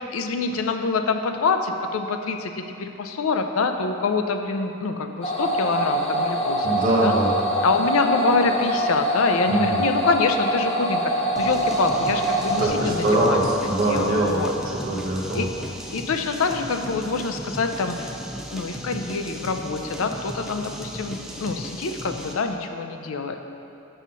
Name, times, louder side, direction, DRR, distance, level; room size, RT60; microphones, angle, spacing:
voice 1, 0.1-7.1 7.6-13.5 13.8-14.5 15.3-15.5 15.9-23.4, left 4 dB, 75° left, 7 dB, 0.5 m, -26 dB
sound 1, 5.2-12.7, equal, 30° left, 1.0 m, -24 dB
voice 2, 6.6-7.3 9.5-9.8 12.6-15.5, right 1 dB, 40° right, -4 dB, 1.1 m, -22 dB
sound 2, 11.4-22.5, right 1 dB, 5° right, 0.4 m, -36 dB
6.1 x 5.6 x 5.5 m, 2.8 s
head